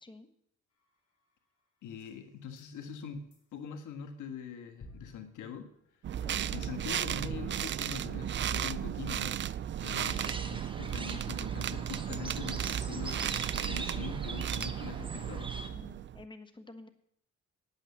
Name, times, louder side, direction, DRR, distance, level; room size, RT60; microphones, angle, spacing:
sound 1, 0.7-3.9 4.2-4.5 4.8-15.9, left 3 dB, 50° left, 4.2 m, -61 dB
voice 1, 1.8-5.7 6.5-9.4 9.8-15.5, left 7 dB, 80° left, 6 dB, 1.6 m, -43 dB
sound 2, 6.0-16.2, right 10 dB, 40° right, 0.4 m, -35 dB
sound 3, 10.0-15.7, right 3 dB, 15° right, 1.2 m, -43 dB
voice 2, 14.7-16.9, left 2 dB, 15° left, 8 dB, 1.3 m, -52 dB
9.8 x 8.8 x 7.1 m, 0.72 s
cardioid pair, 90°, 30 cm